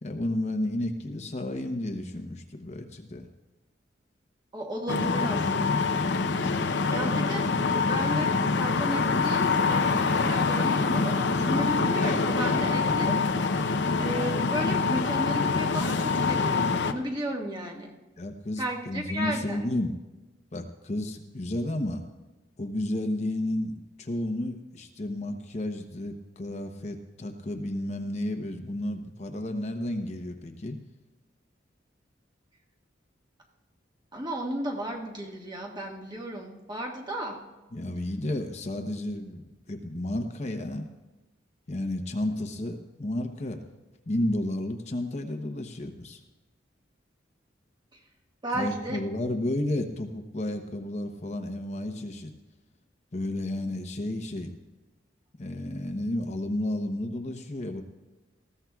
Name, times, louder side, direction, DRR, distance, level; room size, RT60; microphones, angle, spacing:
voice 1, 0.0-3.3 18.2-19.9 20.5-22.0 22.6-30.8 37.7-40.9 41.7-43.6 44.1-46.2 48.5-52.3 53.1-54.5 55.4-57.8, left 1 dB, 40° left, 5 dB, 0.8 m, -32 dB
voice 2, 4.5-6.0 6.4-13.2 13.6-17.9 18.6-19.6 34.1-37.4 47.9-48.0 48.4-49.0, right 1 dB, 25° right, 0 dB, 1.6 m, -34 dB
sound 1, 4.9-16.9, left 4 dB, 65° left, 0.7 m, -25 dB
19.5 x 15.0 x 2.4 m, 1.1 s
head